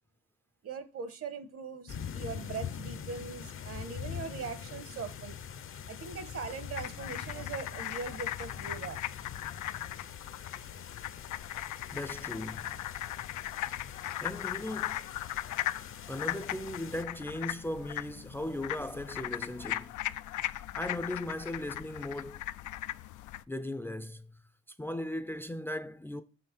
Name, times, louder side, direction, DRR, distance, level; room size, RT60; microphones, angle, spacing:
voice 1, 0.6-5.4 5.9-9.0, right 5 dB, 50° right, 1.2 m, -41 dB
sound 1, 1.9-17.0, left 8 dB, 45° left, 0.7 m, -44 dB
sound 2, 6.8-23.4, left 14 dB, 75° left, 0.5 m, -38 dB
voice 2, 11.9-12.9 14.2-15.1 16.1-20.0 20.7-22.4 23.5-24.4 24.8-26.2, left 1 dB, 5° left, 0.5 m, -38 dB
6.0 x 5.8 x 6.0 m
cardioid pair, 90°, 30 cm